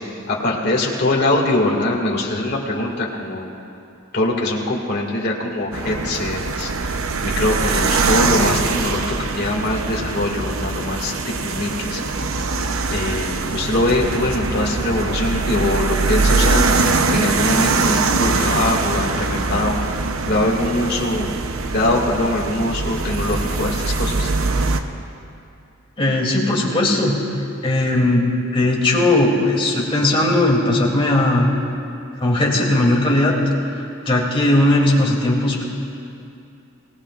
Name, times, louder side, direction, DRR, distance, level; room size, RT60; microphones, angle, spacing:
voice 1, 0.3-3.5 4.1-6.7 7.2-12.0 12.9-16.7 17.1-19.8 20.3-21.3 21.7-24.3, left 2 dB, 50° left, -2 dB, 2.2 m, -22 dB
Inside parked car traffic & rain, 5.7-24.8, right 4 dB, 80° right, 0.8 m, -22 dB
voice 2, 26.0-27.2 27.6-31.5 32.2-33.3 34.1-35.6, left 1 dB, 25° left, -3 dB, 2.8 m, -18 dB
25.5 x 18.5 x 2.5 m, 2.6 s
head